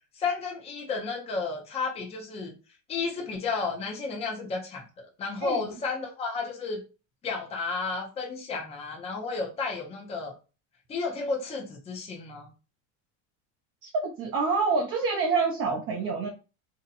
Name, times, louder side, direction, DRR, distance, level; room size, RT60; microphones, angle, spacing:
voice 1, 0.2-2.5 2.9-6.8 7.2-10.3 10.9-12.5, left 4 dB, 15° left, 0.6 m, -32 dB
voice 2, 14.2-16.3, right 4 dB, 30° right, 0.6 m, -27 dB
2.7 x 2.2 x 4.0 m
supercardioid pair, 140°, 39 cm